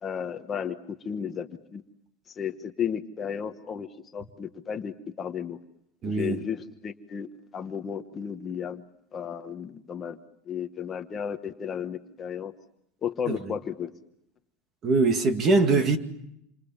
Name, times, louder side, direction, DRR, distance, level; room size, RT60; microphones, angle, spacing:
voice 1, 0.0-1.8 2.3-3.9 4.1-5.6 6.0-8.8 9.1-10.2 10.5-12.5 13.0-13.9, left 7 dB, 20° left, 1.1 m, -33 dB
voice 2, 6.0-6.4 13.3-13.4 14.8-16.0, right 3 dB, 25° right, 2.2 m, -22 dB
28.0 x 26.0 x 7.3 m
supercardioid pair, 165°, 0 cm